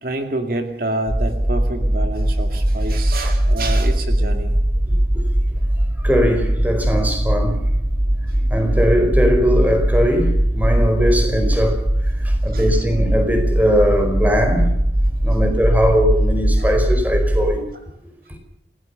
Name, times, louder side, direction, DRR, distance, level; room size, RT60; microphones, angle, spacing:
voice 1, 0.0-4.5 8.3-8.5 12.5-12.8 16.6-16.7, right 2 dB, 55° right, 2.4 m, -28 dB
sound 1, 1.1-17.5, right 1 dB, 25° right, 6.0 m, -19 dB
voice 2, 6.0-7.6 8.5-14.8 15.2-17.6, equal, 10° right, 4.8 m, -20 dB
29.0 x 17.5 x 6.8 m
head